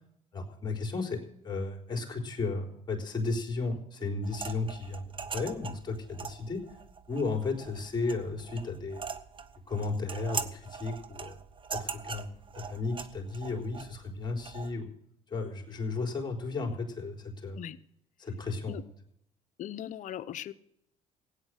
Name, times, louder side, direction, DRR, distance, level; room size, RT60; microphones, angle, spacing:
voice 1, 0.3-6.6 7.1-9.0 9.7-11.4 11.7-14.9 15.3-17.6 18.2-18.8, left 3 dB, 30° left, 1 dB, 4.0 m, -34 dB
sound 1, 4.2-14.7, right 5 dB, 35° right, 1.1 m, -42 dB
voice 2, 19.6-20.5, left 11 dB, 60° left, 13 dB, 0.8 m, -39 dB
16.5 x 9.2 x 6.6 m, 0.74 s
supercardioid pair, 75°, 15 cm